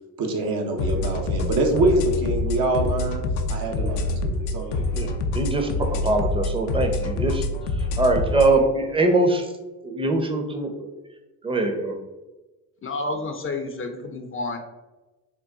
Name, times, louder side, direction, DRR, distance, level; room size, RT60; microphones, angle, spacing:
voice 1, 0.2-3.2 3.5-4.9, right 2 dB, 60° right, 2 dB, 0.8 m, -24 dB
sound 1, 0.8-8.5, left 2 dB, 80° left, 0.5 m, -26 dB
voice 2, 4.9-7.4 7.8-9.5 9.8-10.7 11.4-12.0, right 2 dB, 15° right, 4 dB, 0.6 m, -23 dB
voice 3, 12.8-14.6, left 2 dB, 30° left, 5 dB, 0.5 m, -30 dB
3.9 x 2.2 x 3.5 m, 1.1 s
supercardioid pair, 60°, 41 cm